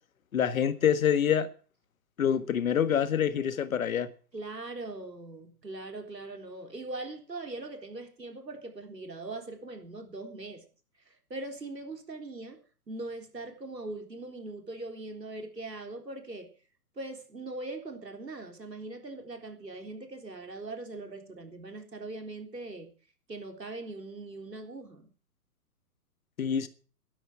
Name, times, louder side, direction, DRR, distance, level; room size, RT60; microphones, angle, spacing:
voice 1, 0.3-1.5 2.2-4.1 26.4-26.7, left 8 dB, 55° left, 1.6 m, -26 dB
voice 2, 4.3-10.6 11.1-12.6 12.9-16.5 17.0-22.9 23.3-25.1, right 2 dB, 90° right, 3.8 m, -41 dB
13.0 x 10.0 x 7.2 m
figure-of-eight pair, 125°, 48 cm